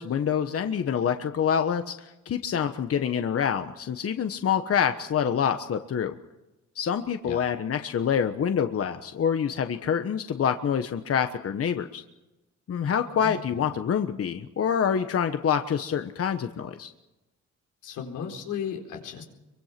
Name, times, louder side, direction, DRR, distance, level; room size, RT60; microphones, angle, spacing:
voice 1, 0.0-6.1 6.7-12.0 12.7-16.9, left 8 dB, 50° left, 8 dB, 1.3 m, -26 dB
voice 2, 13.2-13.7 17.8-19.2, left 7 dB, 90° left, 2 dB, 4.3 m, -35 dB
24.0 x 24.0 x 6.0 m, 1.0 s
cardioid pair, 90°, 30 cm